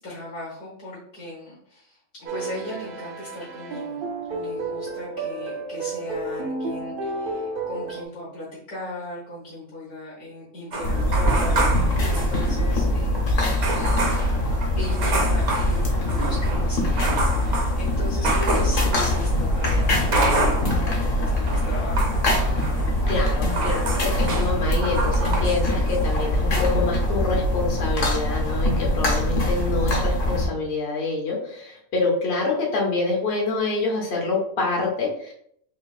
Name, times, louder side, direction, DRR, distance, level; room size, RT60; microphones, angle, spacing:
voice 1, 0.0-4.0 4.3-13.5 14.1-14.3 14.8-22.1, left 1 dB, 85° left, -7 dB, 1.8 m, -37 dB
sound 1, 2.3-8.1, right 3 dB, 70° right, 0.5 m, -31 dB
sound 2, 10.7-12.8 13.0-13.1 13.6-21.0 21.3-25.6 25.9-26.2, right 2 dB, 90° right, 1.4 m, -29 dB
sound 3, 10.8-30.5, left 1 dB, 65° left, 1.3 m, -23 dB
voice 2, 23.1-35.3, left 3 dB, 50° left, -2 dB, 0.9 m, -26 dB
4.0 x 3.4 x 2.3 m, 0.68 s
omnidirectional pair, 1.5 m